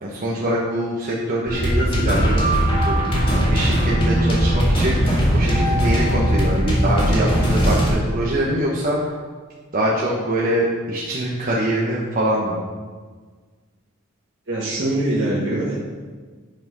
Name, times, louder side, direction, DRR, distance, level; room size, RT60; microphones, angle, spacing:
voice 1, 0.0-2.4 2.8-3.1 3.5-9.1 9.7-12.6, right 1 dB, 45° right, -5 dB, 1.2 m, -23 dB
sound 1, 1.5-7.9, equal, 25° left, 2.3 m, -19 dB
voice 2, 14.5-15.8, right 1 dB, 60° right, -7 dB, 1.6 m, -23 dB
9.2 x 5.9 x 5.5 m, 1.5 s
head